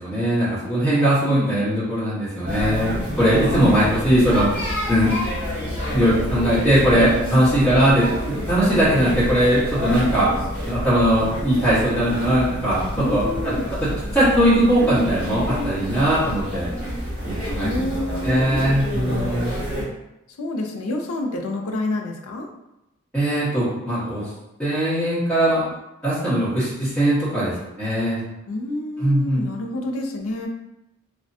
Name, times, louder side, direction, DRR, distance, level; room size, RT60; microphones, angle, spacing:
voice 1, 0.0-2.9 3.2-4.5 4.9-5.1 5.9-10.3 10.6-13.5 13.8-16.7 17.2-17.9 18.2-19.5 23.1-24.3 24.6-25.7 26.0-27.5 27.8-28.2 29.0-29.4, equal, 5° left, -14 dB, 1.2 m, -20 dB
sound 1, 2.4-19.8, equal, 35° right, 1.2 m, -28 dB
voice 2, 7.0-7.5 13.0-13.7 17.6-18.4 18.9-19.6 20.4-22.5 28.5-30.5, left 1 dB, 85° left, 2 dB, 0.4 m, -28 dB
3.2 x 2.1 x 2.6 m, 0.89 s
head